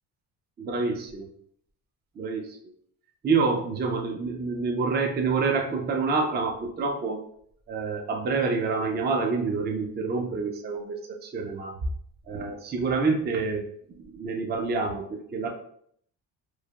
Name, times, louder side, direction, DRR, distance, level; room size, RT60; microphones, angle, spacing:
voice 1, 0.6-1.3 2.2-2.6 3.2-7.2 7.7-11.7 12.3-13.6 14.1-15.5, right 4 dB, 25° right, 3 dB, 0.5 m, -27 dB
3.1 x 2.0 x 2.3 m, 0.64 s
supercardioid pair, 65°, 46 cm